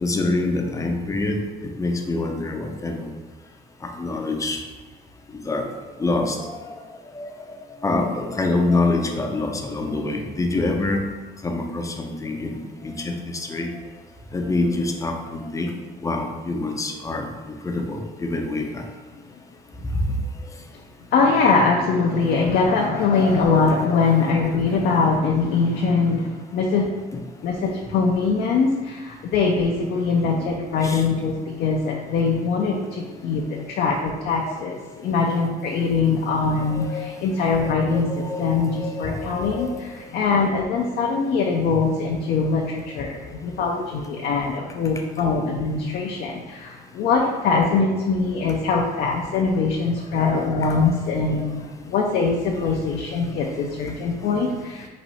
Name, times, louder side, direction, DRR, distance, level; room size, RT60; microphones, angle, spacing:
voice 1, 0.0-3.1 3.8-4.6 5.3-5.7 6.0-6.8 7.1-7.3 7.8-11.0 11.4-13.7 14.3-15.7 16.0-18.8 22.1-22.3 24.2-25.0 30.2-30.5 30.8-31.0 33.5-33.6 34.4-34.7 35.2-35.8 36.7-40.0 42.4-42.5, left 2 dB, 20° left, 2 dB, 0.6 m, -27 dB
voice 2, 21.1-26.9 27.4-54.9, left 4 dB, 65° left, -1 dB, 0.6 m, -22 dB
4.2 x 2.7 x 4.1 m, 1.3 s
cardioid pair, 110°, 17 cm